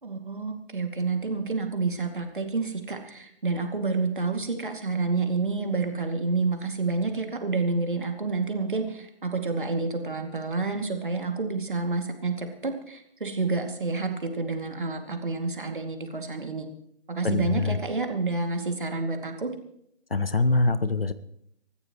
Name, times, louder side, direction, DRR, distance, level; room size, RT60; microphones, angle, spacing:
voice 1, 0.0-16.7 17.1-19.5, right 3 dB, 50° right, 4 dB, 2.5 m, -29 dB
voice 2, 17.2-17.8 20.1-21.1, left 3 dB, 60° left, 14 dB, 1.1 m, -24 dB
26.0 x 14.0 x 3.1 m, 0.74 s
figure-of-eight pair, 155°, 33 cm